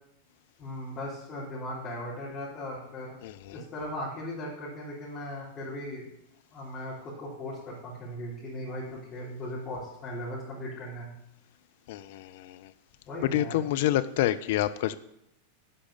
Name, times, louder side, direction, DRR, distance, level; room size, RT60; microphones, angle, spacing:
voice 1, 0.6-3.2 3.5-6.1 6.5-11.1 13.1-13.6, left 1 dB, 25° left, -9 dB, 3.3 m, -38 dB
voice 2, 3.2-3.6 11.9-12.7 13.3-14.9, left 13 dB, 50° left, 12 dB, 0.5 m, -28 dB
11.0 x 5.1 x 7.0 m, 0.82 s
figure-of-eight pair, 90°, 0 cm